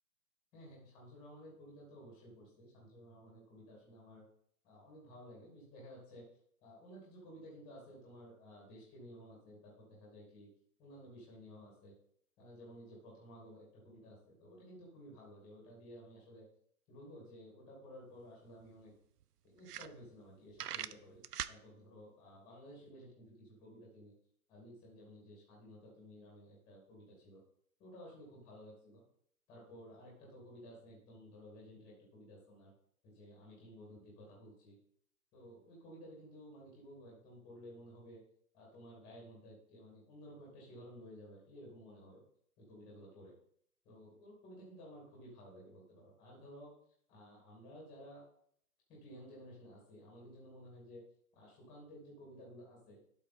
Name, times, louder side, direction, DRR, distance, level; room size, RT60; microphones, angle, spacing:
voice 1, 0.5-4.2 4.6-6.3 6.6-10.5 10.8-11.9 12.4-16.5 16.9-18.9 19.4-21.2 21.5-24.1 24.5-27.4 27.8-29.0 29.5-32.7 33.0-34.8 35.3-38.2 38.5-42.2 42.6-43.3 43.8-46.7 47.1-48.2 48.9-51.0 51.3-53.0, equal, 10° left, -4 dB, 2.3 m, -54 dB
sound 1, 18.2-18.3 18.6-18.7 19.2-19.3 19.6-20.3 20.6-21.6, right 10 dB, 80° right, 0.6 m, -41 dB
12.0 x 5.4 x 4.1 m, 0.65 s
hypercardioid pair, 165°, 46 cm